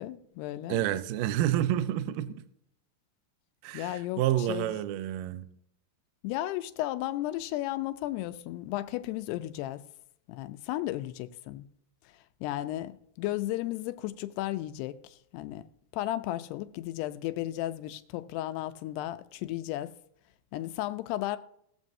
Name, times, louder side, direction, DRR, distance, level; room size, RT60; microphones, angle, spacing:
voice 1, 0.0-0.8 3.7-4.2 4.5-4.7 6.2-9.8 10.3-11.7 12.4-15.7 15.9-19.9 20.5-21.4, left 15 dB, 85° left, 2.7 m, -34 dB
voice 2, 0.7-2.4 3.6-5.5, right 12 dB, 80° right, 2.0 m, -29 dB
20.5 x 7.3 x 2.7 m
omnidirectional pair, 4.7 m